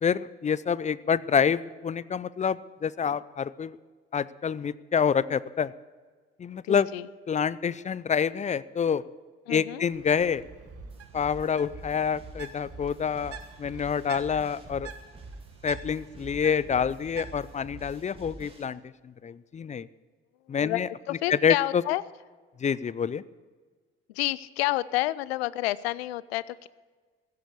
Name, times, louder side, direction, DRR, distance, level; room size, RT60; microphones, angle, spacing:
voice 1, 0.0-3.8 4.1-5.7 6.4-6.9 7.3-9.0 9.5-10.4 11.1-14.9 15.6-19.9 20.5-20.9 21.3-21.8 22.6-23.2, left 7 dB, 25° left, 19 dB, 0.5 m, -27 dB
voice 2, 6.7-7.1 9.5-9.8 20.6-22.0 24.1-26.7, left 17 dB, 75° left, 20 dB, 0.5 m, -29 dB
Bird, 9.9-17.7, right 7 dB, 50° right, 1.5 m, -47 dB
sound 1, 10.6-18.6, right 2 dB, 20° right, 2.8 m, -46 dB
15.5 x 8.5 x 8.1 m, 1.4 s
figure-of-eight pair, 50°, 31 cm